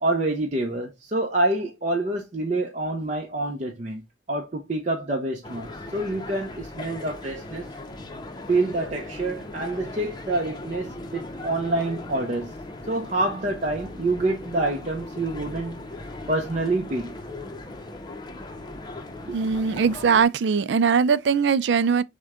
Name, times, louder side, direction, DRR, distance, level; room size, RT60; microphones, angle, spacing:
voice 1, 0.0-4.0 4.3-7.7 8.5-12.5 12.9-17.1 19.3-19.4, right 2 dB, 40° right, 0.7 m, -27 dB
sound 1, 5.4-20.3, left 2 dB, 25° left, 0.6 m, -38 dB
voice 2, 19.3-22.0, right 6 dB, 75° right, 0.3 m, -21 dB
6.3 x 2.2 x 3.6 m
head